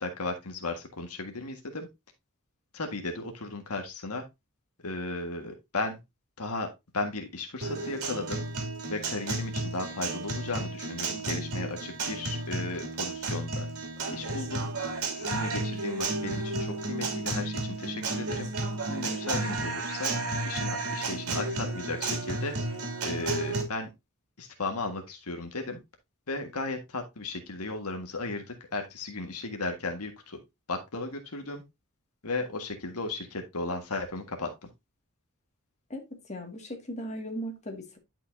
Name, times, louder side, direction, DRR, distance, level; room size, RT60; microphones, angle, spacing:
voice 1, 0.0-1.9 2.7-4.2 4.8-6.0 6.4-6.7 6.9-8.4 8.9-13.7 14.1-14.7 15.2-18.5 18.8-20.1 20.5-23.9 24.4-25.8 26.3-30.4 30.7-31.6 32.2-34.5, left 3 dB, 75° left, 1.6 m, -35 dB
Guitar, 7.6-23.6, right 2 dB, 80° right, 2.6 m, -32 dB
voice 2, 35.9-38.0, equal, 30° left, 2.0 m, -38 dB
11.0 x 5.6 x 2.6 m
head